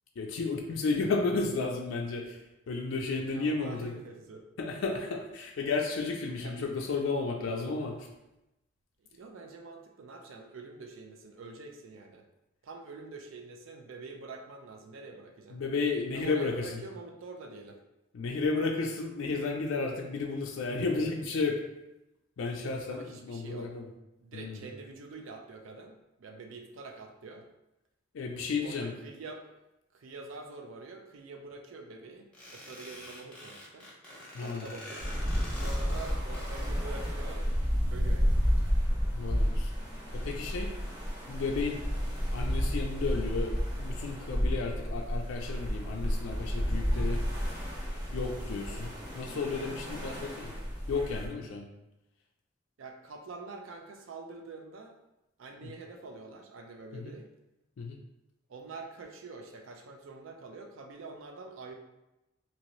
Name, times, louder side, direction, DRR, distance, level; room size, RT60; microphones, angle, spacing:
voice 1, 0.2-2.4 2.7-3.9 4.6-8.1 15.5-16.8 18.1-21.6 22.4-23.8 24.3-24.6 28.1-28.9 34.3-34.7 39.1-39.7 40.1-40.7 41.3-41.9 42.3-47.2 48.1-50.5 50.9-51.7 55.6-55.7 56.9-57.1 57.8-58.0, left 4 dB, 85° left, 1 dB, 0.4 m, -33 dB
voice 2, 3.3-4.5 6.4-6.7 9.1-12.3 12.6-15.6 16.1-17.8 22.9-23.7 24.2-27.4 28.6-29.5 29.9-33.9 34.4-35.1 35.5-37.5 37.9-38.5 50.0-50.3 52.8-55.0 55.4-57.3 58.5-61.7, right 3 dB, 80° right, 3 dB, 0.4 m, -46 dB
sound 1, 32.3-36.7, left 1 dB, 5° left, 0.6 m, -46 dB
sound 2, 35.0-51.3, equal, 25° right, 0.9 m, -31 dB
2.9 x 2.7 x 3.0 m, 0.93 s
head